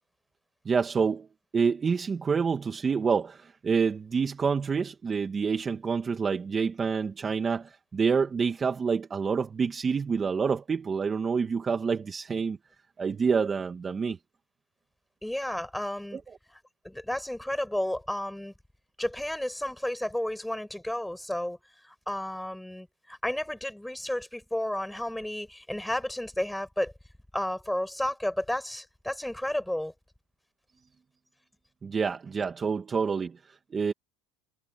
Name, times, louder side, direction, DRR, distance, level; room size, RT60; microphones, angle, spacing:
voice 1, 0.6-1.3 1.5-12.6 13.0-14.2 16.1-16.2 31.8-33.9, right 5 dB, 20° right, 1.5 m, -27 dB
voice 2, 15.2-16.2 16.8-18.5 19.0-21.6 21.8-26.9 27.3-29.9, left 1 dB, 5° left, 6.4 m, -32 dB
supercardioid pair, 125°, 0 cm